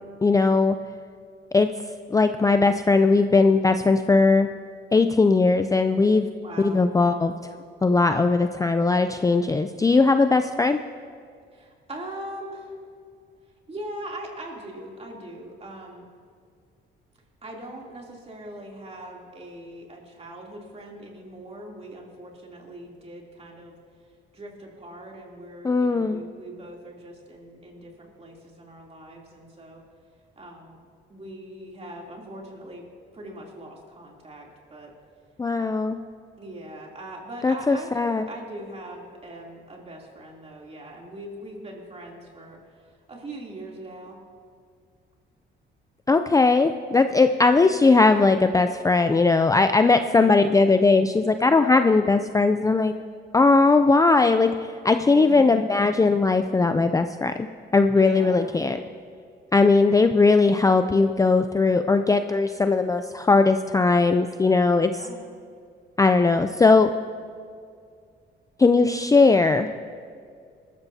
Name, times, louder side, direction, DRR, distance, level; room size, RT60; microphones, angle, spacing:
voice 1, 0.2-0.8 1.5-1.7 2.1-4.5 4.9-6.3 6.6-7.3 7.8-10.8 25.6-26.2 35.4-36.0 37.4-38.3 46.1-52.9 53.3-54.5 54.8-57.5 57.7-58.8 59.5-64.9 66.0-66.9 68.6-69.7, left 3 dB, 15° left, 8 dB, 0.4 m, -19 dB
voice 2, 6.4-6.8 11.5-12.8 13.7-16.1 17.4-23.8 24.3-29.8 30.4-30.8 31.1-32.8 33.1-34.9 35.6-35.9 36.4-42.6 43.1-44.2 50.2-50.5 55.1-55.6 58.0-58.5 64.8-65.2, right 1 dB, 30° right, -1 dB, 3.1 m, -41 dB
20.5 x 13.5 x 2.8 m, 2.2 s
cardioid pair, 90°, 20 cm